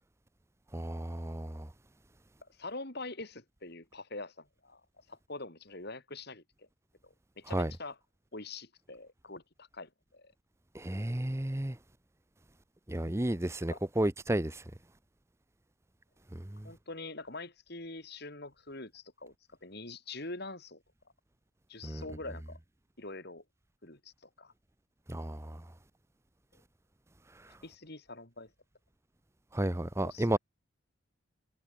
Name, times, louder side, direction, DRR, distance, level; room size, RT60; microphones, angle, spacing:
voice 1, 0.7-1.7 7.5-7.7 10.7-11.8 12.9-14.6 16.3-16.7 21.8-22.0 25.1-25.6 29.5-30.4, right 1 dB, 15° right, 0.7 m, -32 dB
voice 2, 2.6-4.8 5.1-6.7 7.0-8.0 8.3-10.3 13.7-13.8 16.6-19.3 19.6-20.8 21.7-22.6 23.0-23.4 23.8-24.1 24.4-24.5 27.6-28.5 30.0-30.4, left 2 dB, 50° left, 3.9 m, -44 dB
head